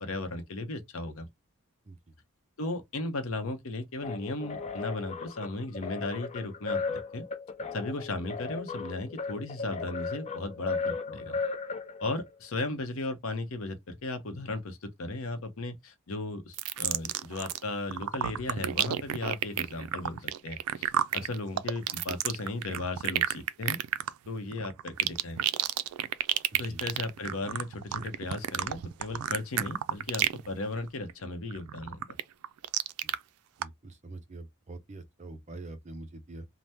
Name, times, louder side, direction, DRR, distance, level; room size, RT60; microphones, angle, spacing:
voice 1, 0.0-1.3 2.6-7.2 7.7-11.4 12.0-23.8 24.3-25.4 26.6-32.0, left 2 dB, 70° left, 0.7 m, -36 dB
sound 1, 4.0-12.3, left 4 dB, 30° left, 0.5 m, -36 dB
sound 2, 16.5-17.6 17.9-30.5 30.8-31.1 31.5-33.2 33.6-33.7, right 11 dB, 85° right, 0.3 m, -30 dB
voice 2, 33.6-36.5, right 2 dB, 30° right, 0.5 m, -44 dB
3.4 x 2.0 x 2.7 m
head